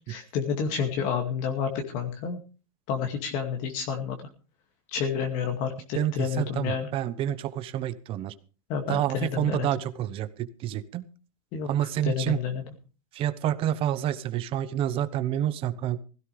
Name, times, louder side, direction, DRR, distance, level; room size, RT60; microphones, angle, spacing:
voice 1, 0.1-2.4 2.9-4.2 4.9-6.9 8.7-9.7 11.5-12.6, left 6 dB, 45° left, 4 dB, 2.3 m, -30 dB
voice 2, 6.0-8.3 8.9-11.0 11.6-12.4 13.1-16.0, right 11 dB, 30° right, 13 dB, 1.0 m, -28 dB
16.5 x 16.0 x 3.4 m, 0.37 s
supercardioid pair, 150°, 17 cm